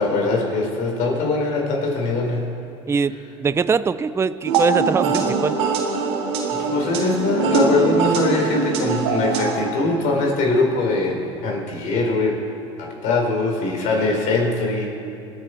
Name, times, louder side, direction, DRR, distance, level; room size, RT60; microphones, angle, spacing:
voice 1, 0.0-2.5 6.6-12.3 12.8-15.0, left 3 dB, 65° left, 0 dB, 4.5 m, -22 dB
voice 2, 2.9-5.6, right 5 dB, 20° right, 14 dB, 0.4 m, -22 dB
sound 1, 4.4-9.6, right 5 dB, 85° right, 2.1 m, -22 dB
26.5 x 10.0 x 4.6 m, 2.8 s
supercardioid pair, 90°, 14 cm